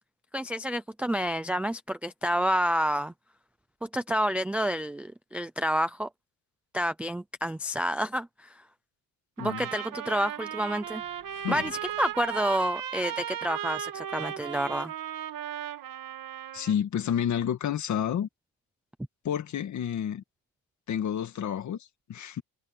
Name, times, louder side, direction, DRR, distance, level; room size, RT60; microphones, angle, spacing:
voice 1, 0.3-3.1 3.8-6.1 6.7-8.6 9.4-11.0 11.5-14.9, equal, 5° right, 0.4 m, -29 dB
Trumpet, 9.4-16.8, right 10 dB, 45° right, 2.3 m, -36 dB
sound 1, 10.8-12.5, left 14 dB, 60° left, 2.1 m, -40 dB
voice 2, 16.5-18.3 19.2-20.2 20.9-22.4, left 9 dB, 40° left, 1.8 m, -30 dB
cardioid pair, 180°, 46 cm